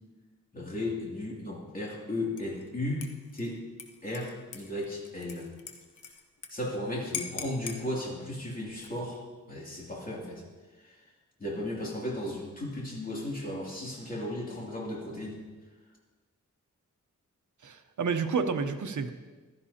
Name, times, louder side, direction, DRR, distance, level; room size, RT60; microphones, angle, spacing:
voice 1, 0.5-3.0 3.3-3.6 4.0-5.5 6.5-9.2 9.5-10.4 10.8-11.0 11.4-15.4, left 1 dB, 25° left, -4 dB, 2.8 m, -35 dB
Dishes pots and pans / Liquid, 2.4-2.7 3.0-6.5 6.8-6.9 7.1-7.8 8.7-9.2, left 6 dB, 75° left, 1.0 m, -42 dB
voice 2, 17.6-19.1, right 5 dB, 65° right, 7 dB, 0.9 m, -30 dB
15.5 x 12.0 x 2.9 m, 1.3 s
wide cardioid pair, 110°, 31 cm